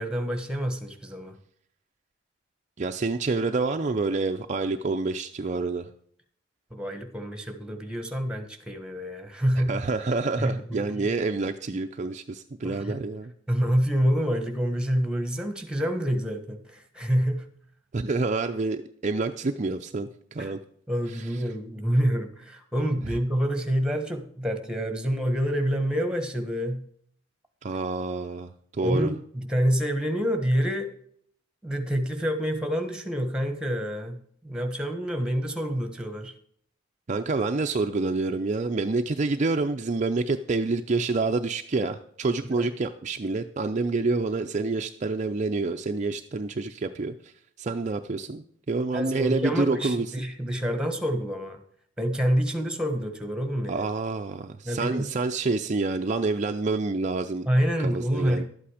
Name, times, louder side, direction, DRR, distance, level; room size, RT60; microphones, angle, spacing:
voice 1, 0.0-1.4 6.7-9.8 10.4-11.1 12.6-13.0 13.5-17.5 20.4-20.5 20.9-26.8 28.8-30.9 31.6-36.3 42.4-42.7 48.9-51.6 52.0-53.9 54.6-55.1 57.4-58.4, equal, 5° right, 7 dB, 1.2 m, -27 dB
voice 2, 2.8-5.9 9.7-13.3 17.9-20.6 27.6-29.1 37.1-47.3 47.6-50.1 53.7-57.5 57.8-58.4, right 3 dB, 35° right, 5 dB, 0.5 m, -27 dB
12.0 x 8.5 x 5.0 m, 0.64 s
head